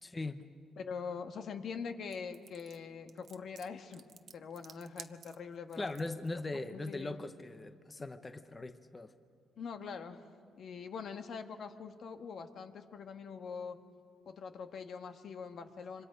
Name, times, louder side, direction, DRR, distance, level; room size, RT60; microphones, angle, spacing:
voice 1, 0.0-0.4 5.7-9.1, left 2 dB, 25° left, 9 dB, 0.9 m, -40 dB
voice 2, 0.8-4.0 4.3-5.9 6.7-7.2 9.6-10.2 10.6-13.8 14.2-16.0, left 5 dB, 60° left, 7 dB, 1.4 m, -43 dB
sound 1, 2.1-6.3, right 7 dB, 55° right, 0.9 m, -54 dB
26.5 x 25.0 x 5.2 m, 2.3 s
cardioid pair, 90°, 0 cm